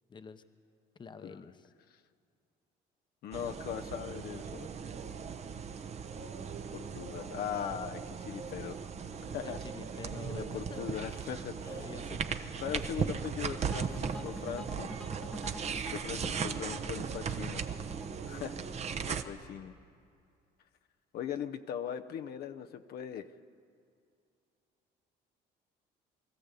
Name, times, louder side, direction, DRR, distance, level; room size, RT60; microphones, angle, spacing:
voice 1, 0.1-0.4 0.9-1.7 9.3-11.0 11.6-12.6, left 5 dB, 25° left, 10 dB, 0.9 m, -48 dB
voice 2, 3.2-4.7 6.7-8.8 9.3-9.6 10.3-11.7 12.6-14.9 15.9-17.6 18.3-19.7 21.1-23.3, left 9 dB, 65° left, 7 dB, 0.8 m, -40 dB
sound 1, 3.3-19.2, right 6 dB, 40° right, 1.0 m, -38 dB
sound 2, 13.7-18.8, equal, 5° left, 1.1 m, -48 dB
22.5 x 14.0 x 8.2 m, 2.5 s
cardioid pair, 110°, 17 cm